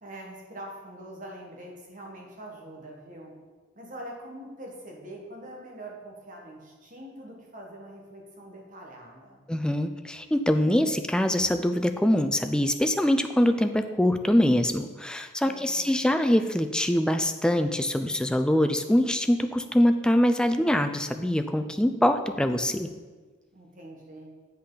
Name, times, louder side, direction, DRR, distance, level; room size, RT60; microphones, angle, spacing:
voice 1, 0.0-3.3 3.7-9.5 15.4-16.1 23.5-24.3, right 1 dB, 40° right, -1 dB, 1.3 m, -44 dB
voice 2, 9.5-22.9, left 1 dB, 5° left, 8 dB, 0.3 m, -24 dB
8.2 x 5.5 x 3.9 m, 1.3 s
head